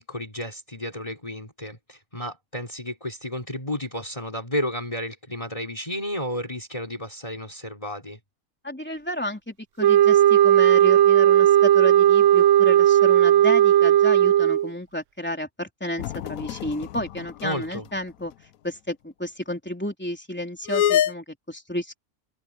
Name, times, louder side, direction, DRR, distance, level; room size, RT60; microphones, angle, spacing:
voice 1, 0.0-8.2 17.4-17.9, left 1 dB, 25° left, 4.0 m, -32 dB
voice 2, 8.6-18.3 18.6-22.0, left 1 dB, 5° left, 3.6 m, -32 dB
sound 1, 9.8-14.7, right 11 dB, 65° right, 0.9 m, -16 dB
sound 2, 16.0-17.7 18.0-18.1 20.7-21.1, left 11 dB, 80° left, 1.1 m, -25 dB
omnidirectional pair, 1.5 m